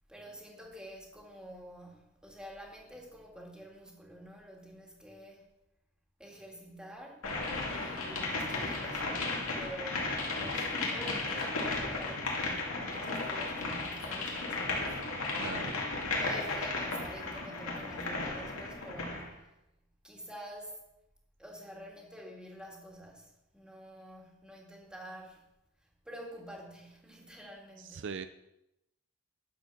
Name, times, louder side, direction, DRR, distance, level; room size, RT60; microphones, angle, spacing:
voice 1, 0.1-5.5 6.2-7.3 7.7-15.2 16.1-19.5 20.0-20.8 21.4-25.4 26.0-28.1, equal, 5° right, -1 dB, 2.2 m, -48 dB
sound 1, 7.2-19.3, left 3 dB, 85° left, 2.4 m, -35 dB
voice 2, 15.4-15.8 27.8-28.3, right 5 dB, 60° right, 11 dB, 0.5 m, -40 dB
10.5 x 7.1 x 6.0 m, 0.87 s
head